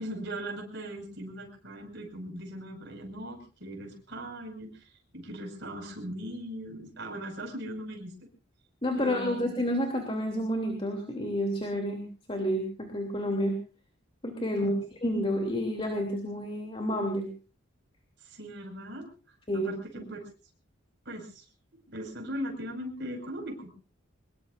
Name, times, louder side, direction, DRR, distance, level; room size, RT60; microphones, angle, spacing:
voice 1, 0.0-8.1 9.0-9.5 14.5-14.8 15.2-15.3 18.2-20.2 21.1-21.4 21.9-23.7, right 1 dB, 55° right, 3 dB, 5.8 m, -39 dB
voice 2, 8.8-13.5 14.2-17.3 19.5-19.7, equal, 25° left, 3 dB, 3.0 m, -30 dB
24.0 x 21.5 x 2.6 m, 0.35 s
head